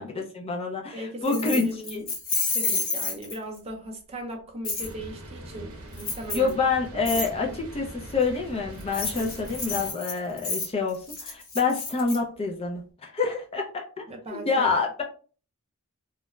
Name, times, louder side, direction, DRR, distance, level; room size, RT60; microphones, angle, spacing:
voice 1, 0.0-2.0 6.3-13.8 14.3-15.0, left 4 dB, 25° left, 0.4 m, -27 dB
voice 2, 0.9-2.1 2.5-6.5 6.9-7.6 9.1-9.3 14.1-14.7, right 1 dB, 30° right, 0.5 m, -37 dB
Keys jangling, 1.2-3.6 4.6-4.9 6.0-6.5 7.0-7.3 8.8-12.2, left 3 dB, 40° left, 1.0 m, -30 dB
sound 1, 4.8-9.9, right 1 dB, 70° right, 0.7 m, -42 dB
2.3 x 2.0 x 3.0 m
head